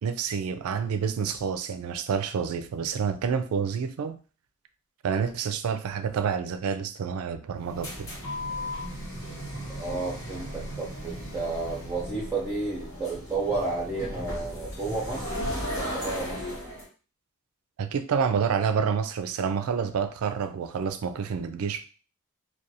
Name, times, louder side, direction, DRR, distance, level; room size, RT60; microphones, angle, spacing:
voice 1, 0.0-4.2 5.0-8.1 17.8-21.9, right 6 dB, 80° right, 10 dB, 0.3 m, -28 dB
sound 1, 7.5-16.9, equal, 60° left, 1.1 m, -36 dB
voice 2, 9.7-15.3 15.7-16.5, right 3 dB, 10° right, -4 dB, 0.5 m, -32 dB
2.5 x 2.2 x 2.7 m, 0.37 s
head